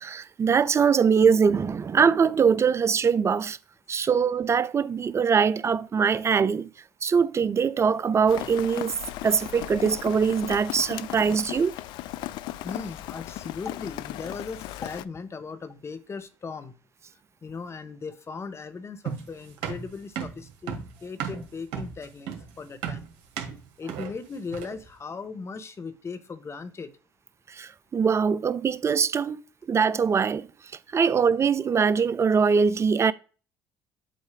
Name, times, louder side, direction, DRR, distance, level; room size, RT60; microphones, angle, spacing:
voice 1, 0.0-3.6 3.9-6.7 7.0-9.0 9.2-11.7 27.6-29.4 29.7-30.5 30.9-33.1, right 6 dB, 35° right, 0.5 m, -22 dB
Rain, 8.3-15.0, left 15 dB, 70° left, 0.4 m, -37 dB
voice 2, 12.6-16.7 17.1-23.1 23.8-26.9, left 4 dB, 35° left, 1.1 m, -38 dB
sound 1, 19.0-24.9, right 7 dB, 70° right, 1.8 m, -35 dB
7.8 x 2.7 x 4.9 m
hypercardioid pair, 65°, 8 cm